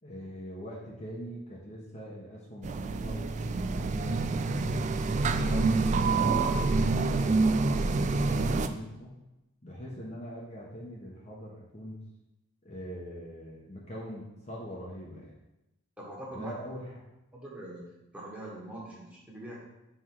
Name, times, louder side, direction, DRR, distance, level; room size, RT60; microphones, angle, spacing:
voice 1, 0.0-4.7 5.3-9.1 9.6-12.0 12.6-15.4 16.3-16.9, equal, 35° left, -4 dB, 1.1 m, -43 dB
sound 1, 2.6-8.7, right 3 dB, 35° right, 0.3 m, -27 dB
voice 2, 16.0-16.8 17.3-17.8 18.1-19.6, right 1 dB, 5° right, -6 dB, 1.7 m, -42 dB
5.8 x 4.6 x 4.7 m, 0.94 s
head